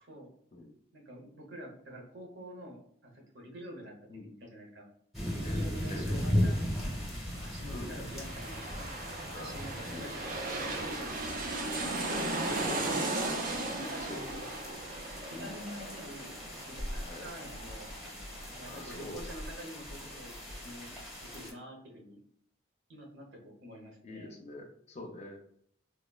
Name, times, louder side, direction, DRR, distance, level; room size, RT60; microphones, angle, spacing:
voice 1, 0.9-4.9 5.3-7.0 7.3-11.8 13.6-14.4 15.3-17.9 18.5-20.4 20.6-20.9 21.3-22.2 22.9-24.4, equal, 70° right, 0 dB, 0.9 m, -48 dB
sound 1, 5.1-21.5, equal, ahead, 0.8 m, -38 dB
voice 2, 5.4-6.3 7.7-8.0 9.3-9.5 9.8-10.6 11.7-13.5 14.0-14.5 15.3-15.5 17.0-17.2 18.6-19.3 24.0-25.4, left 2 dB, 35° left, 2 dB, 0.5 m, -45 dB
sound 2, 7.7-19.1 19.4-19.5, right 2 dB, 45° right, 0.4 m, -37 dB
3.4 x 2.1 x 2.3 m, 0.68 s
head